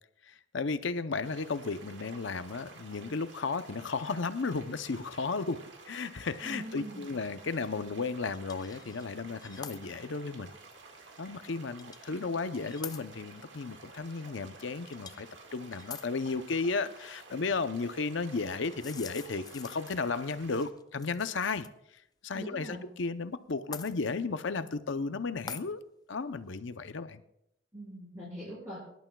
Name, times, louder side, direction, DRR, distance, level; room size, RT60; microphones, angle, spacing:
voice 1, 0.2-10.5 11.2-15.3 15.5-21.7 22.2-25.8 26.1-27.2, left 4 dB, 60° left, 11 dB, 0.7 m, -34 dB
sound 1, 1.2-20.7, right 3 dB, 60° right, 1.8 m, -52 dB
voice 2, 6.4-7.1 22.3-22.9 27.7-28.8, right 1 dB, 15° right, -9 dB, 5.5 m, -42 dB
sound 2, 8.3-9.1 9.4-9.8 10.3-10.4 11.8-12.1 12.6-13.0 14.9-15.3 15.7-16.1 18.6-21.7 22.0-22.1 23.7-23.9 25.5-25.7, left 6 dB, 20° left, 0.4 m, -45 dB
24.0 x 11.5 x 2.3 m, 0.79 s
head